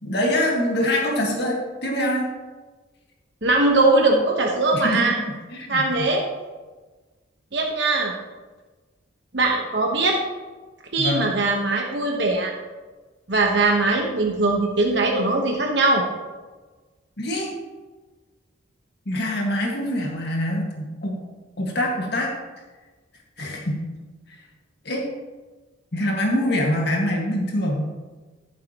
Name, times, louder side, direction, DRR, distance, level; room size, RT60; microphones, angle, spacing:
voice 1, 0.0-2.3 4.7-6.1 11.0-11.3 17.2-17.6 19.1-21.2 21.6-22.3 23.4-23.8 24.9-25.1 25.9-27.9, left 1 dB, 55° left, -1 dB, 1.8 m, -24 dB
voice 2, 3.4-5.2 5.7-6.2 7.5-8.1 9.3-10.2 10.9-12.5 13.3-16.0, right 2 dB, 60° right, 0 dB, 1.2 m, -20 dB
14.5 x 7.3 x 3.0 m, 1.3 s
head